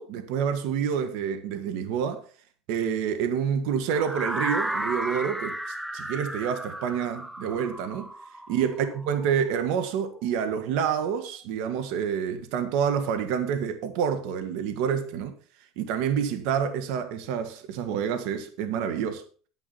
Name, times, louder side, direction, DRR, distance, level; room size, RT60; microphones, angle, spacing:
voice 1, 0.0-2.2 2.7-5.6 5.9-8.1 8.5-15.3 15.8-19.2, right 7 dB, 70° right, 1.7 m, -28 dB
sound 1, 3.9-9.8, right 1 dB, 5° right, 0.7 m, -34 dB
10.0 x 9.7 x 4.1 m
supercardioid pair, 130°, 0 cm